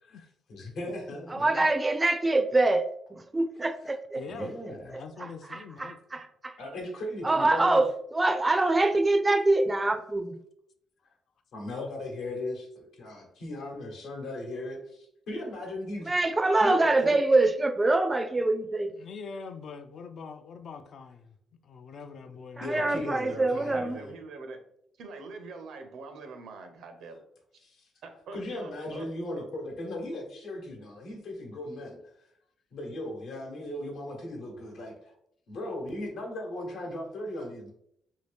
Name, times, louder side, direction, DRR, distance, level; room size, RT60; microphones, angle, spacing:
voice 1, 0.1-1.5 4.3-5.0 6.6-7.8 11.5-16.1 16.6-17.2 22.6-24.1 27.6-27.9 28.3-32.0 32.7-35.1 35.5-37.7, left 1 dB, 75° left, 1 dB, 1.0 m, -37 dB
voice 2, 1.3-4.2 4.9-6.6 7.2-10.4 16.1-18.9 22.6-24.0, right 2 dB, 20° right, 8 dB, 0.4 m, -25 dB
voice 3, 4.2-6.0 19.0-21.4 21.6-23.1, left 5 dB, 60° left, 7 dB, 0.3 m, -44 dB
voice 4, 22.7-24.6 25.0-27.2 28.0-29.1, right 3 dB, 75° right, 6 dB, 0.6 m, -44 dB
2.9 x 2.7 x 3.3 m, 0.72 s
cardioid pair, 90°, 0 cm